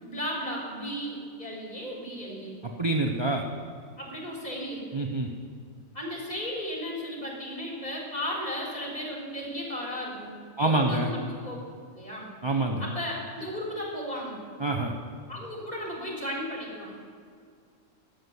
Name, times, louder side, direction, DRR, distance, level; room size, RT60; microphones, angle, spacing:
voice 1, 0.0-2.6 4.0-5.0 5.9-11.6 11.9-12.3 12.8-14.4 15.3-16.9, equal, 30° left, -2 dB, 3.7 m, -35 dB
voice 2, 2.8-3.4 4.9-5.3 10.6-11.1 12.4-12.9 14.6-14.9, right 2 dB, 25° right, 1 dB, 0.7 m, -26 dB
12.5 x 6.9 x 9.6 m, 2.1 s
omnidirectional pair, 1.4 m